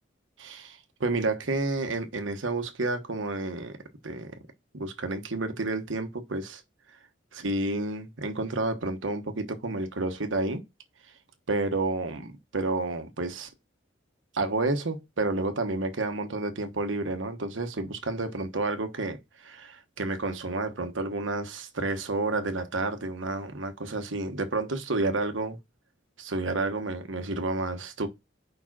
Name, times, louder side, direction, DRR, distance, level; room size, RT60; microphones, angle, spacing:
voice 1, 0.4-3.8 4.0-4.3 4.7-6.6 7.3-10.6 11.5-13.5 14.3-25.6 26.2-28.1, right 2 dB, 85° right, 1.2 m, -30 dB
5.3 x 4.8 x 6.0 m
head